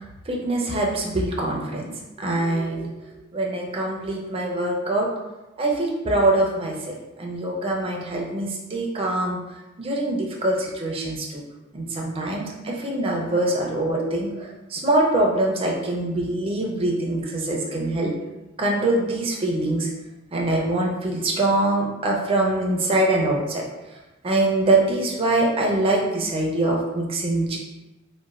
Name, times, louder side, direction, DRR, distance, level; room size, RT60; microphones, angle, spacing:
voice 1, 0.3-1.9 2.2-2.9 3.3-5.1 5.6-9.4 9.8-11.4 11.7-18.1 18.6-19.9 20.3-23.6 24.2-27.6, right 2 dB, 25° right, -1 dB, 0.4 m, -23 dB
3.0 x 2.1 x 2.4 m, 1.1 s
head